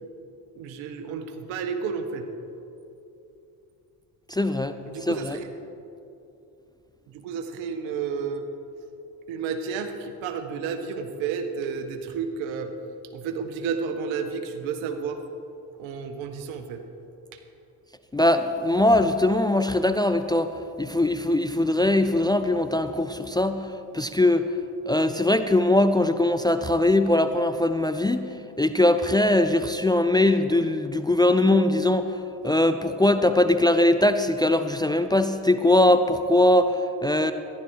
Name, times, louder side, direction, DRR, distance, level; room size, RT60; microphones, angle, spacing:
voice 1, 0.6-2.3 4.9-5.5 7.1-8.5 9.3-12.7 13.1-15.2 15.8-16.8, right 6 dB, 75° right, 7 dB, 1.3 m, -31 dB
voice 2, 4.3-4.7 5.1-5.4 18.1-20.5 20.8-23.6 23.9-24.5 24.9-28.3 28.6-32.1 32.4-37.3, left 1 dB, 10° left, 10 dB, 0.4 m, -21 dB
14.0 x 11.5 x 4.7 m, 2.7 s
supercardioid pair, 65°, 47 cm